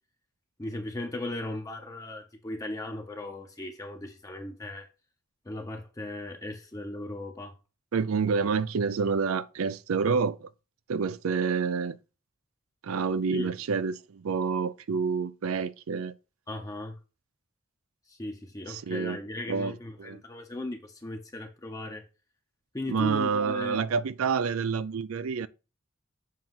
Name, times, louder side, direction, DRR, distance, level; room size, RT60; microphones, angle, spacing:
voice 1, 0.6-4.9 5.5-7.5 13.3-13.5 16.5-17.0 18.1-22.0 22.7-23.8, left 1 dB, 15° left, 0.7 m, -37 dB
voice 2, 7.9-10.5 10.9-12.0 12.8-16.1 18.7-19.2 19.5-20.2 22.9-25.5, right 5 dB, 85° right, 0.5 m, -28 dB
7.3 x 2.9 x 5.7 m
head